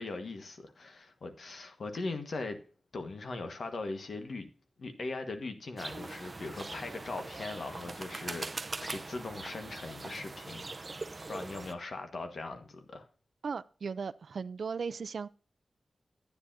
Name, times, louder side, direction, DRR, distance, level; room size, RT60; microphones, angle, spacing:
voice 1, 0.0-2.6 2.9-4.5 4.8-10.7 11.3-13.1, left 3 dB, 65° left, 1.4 m, -40 dB
sound 1, 5.8-11.7, right 3 dB, 35° right, 0.6 m, -42 dB
voice 2, 13.4-15.3, right 5 dB, 75° right, 0.4 m, -37 dB
10.5 x 9.5 x 2.7 m
wide cardioid pair, 100°, 0 cm